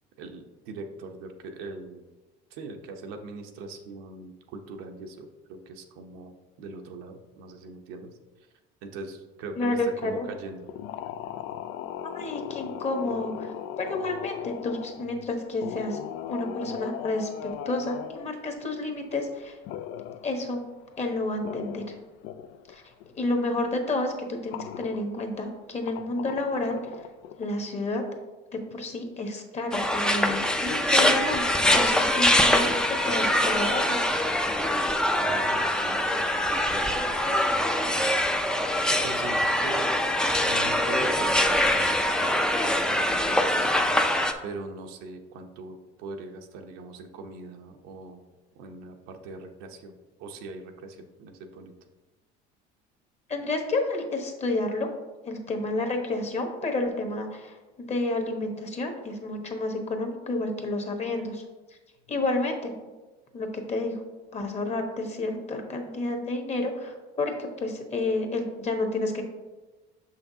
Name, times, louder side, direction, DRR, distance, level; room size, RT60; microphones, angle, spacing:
voice 1, 0.2-2.0 2.5-8.1 8.8-9.8 10.0-10.7 35.2-38.1 38.9-39.9 40.4-43.7 44.4-48.2 48.5-49.9 50.2-51.7, right 3 dB, 80° right, 4 dB, 0.8 m, -41 dB
voice 2, 9.6-10.3 12.0-16.0 16.3-19.6 20.2-20.6 21.0-22.0 22.7-27.1 27.4-28.0 28.5-34.0 53.3-54.9 55.2-61.4 61.7-61.8 62.1-62.7 63.3-64.0 64.3-69.2, left 2 dB, 30° left, 4 dB, 1.1 m, -30 dB
sound 1, 10.7-15.3 15.6-18.3 19.6-20.4 20.9-21.0 21.2-22.7 23.0-23.3 23.6-23.7 24.5-25.5 25.8-27.4, left 10 dB, 70° left, 0.4 m, -38 dB
sound 2, 29.7-44.3, left 1 dB, 5° left, 0.4 m, -24 dB
6.6 x 5.7 x 2.7 m, 1.2 s
cardioid pair, 115°, 21 cm